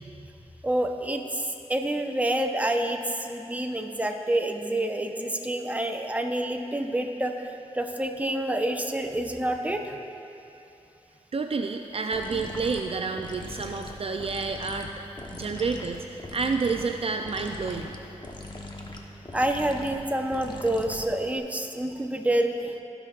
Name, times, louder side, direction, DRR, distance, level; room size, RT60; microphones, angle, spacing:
voice 1, 0.6-10.0 12.3-12.4 19.3-22.8, right 1 dB, 10° right, 3 dB, 0.9 m, -28 dB
voice 2, 11.3-14.9 15.3-17.9, right 4 dB, 50° right, 4 dB, 0.5 m, -29 dB
sound 1, 12.1-21.4, left 2 dB, 35° left, 1.0 m, -41 dB
18.0 x 6.0 x 2.5 m, 2.8 s
cardioid pair, 50°, 12 cm